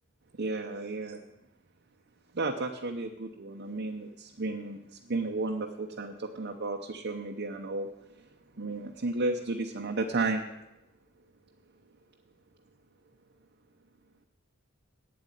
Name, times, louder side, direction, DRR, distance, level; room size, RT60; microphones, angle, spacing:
voice 1, 0.4-1.2 2.3-7.9 8.2-8.3 8.6-10.4, right 3 dB, 50° right, 2 dB, 0.8 m, -33 dB
8.6 x 8.0 x 9.2 m, 0.95 s
head